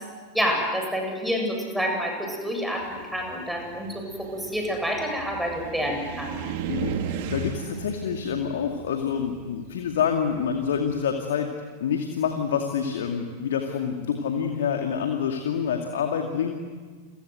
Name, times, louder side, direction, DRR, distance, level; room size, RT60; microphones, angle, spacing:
voice 1, 0.3-6.4, equal, ahead, 2 dB, 7.9 m, -28 dB
Car, 2.8-11.0, right 7 dB, 50° right, 2.8 m, -36 dB
voice 2, 6.7-11.5 11.8-16.5, left 7 dB, 60° left, 4 dB, 2.3 m, -27 dB
30.0 x 24.5 x 8.0 m, 1.5 s
figure-of-eight pair, 90°, 0 cm